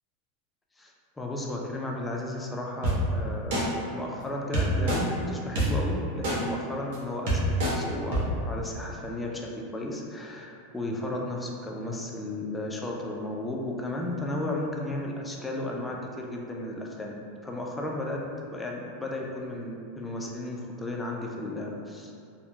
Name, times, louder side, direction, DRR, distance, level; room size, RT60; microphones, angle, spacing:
voice 1, 0.8-9.5 9.7-17.2 17.4-18.2 18.5-22.1, left 1 dB, 10° left, -1 dB, 0.3 m, -34 dB
sound 1, 2.8-2.9 3.5-3.6 4.5-5.0 5.6-5.7 6.2-6.4 6.9-7.0 7.3-7.7 8.1-8.2, right 2 dB, 70° right, 0.7 m, -25 dB
2.8 x 2.0 x 2.2 m, 2.4 s
supercardioid pair, 135°, 0 cm